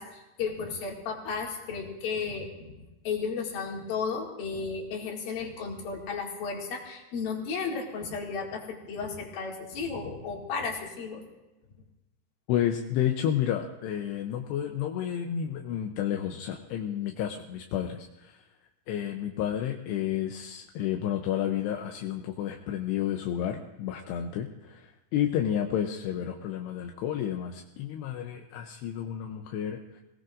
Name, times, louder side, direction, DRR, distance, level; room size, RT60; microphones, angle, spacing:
voice 1, 0.0-2.7 3.0-11.2, left 5 dB, 60° left, -1 dB, 3.8 m, -34 dB
voice 2, 12.5-18.4 18.9-30.0, left 10 dB, 80° left, 3 dB, 2.9 m, -31 dB
25.5 x 18.0 x 2.6 m, 1.0 s
omnidirectional pair, 4.9 m